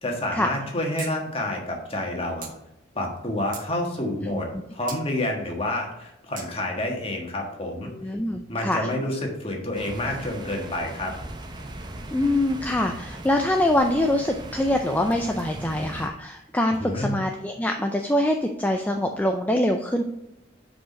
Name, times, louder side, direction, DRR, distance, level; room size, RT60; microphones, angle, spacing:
voice 1, 0.0-2.5 2.9-7.9 8.5-11.1 16.8-17.2, left 1 dB, 30° left, 1 dB, 1.4 m, -29 dB
sound 1, 1.0-1.1 1.4-1.5 2.4-2.5 3.2-3.7 4.9-5.0 6.4-6.5, right 7 dB, 45° right, 1.2 m, -38 dB
voice 2, 4.2-4.6 7.9-8.9 12.1-20.0, left 1 dB, 10° left, 3 dB, 0.4 m, -24 dB
sound 2, 9.7-16.1, right 1 dB, 20° right, 0.7 m, -38 dB
6.2 x 4.9 x 5.2 m, 0.89 s
head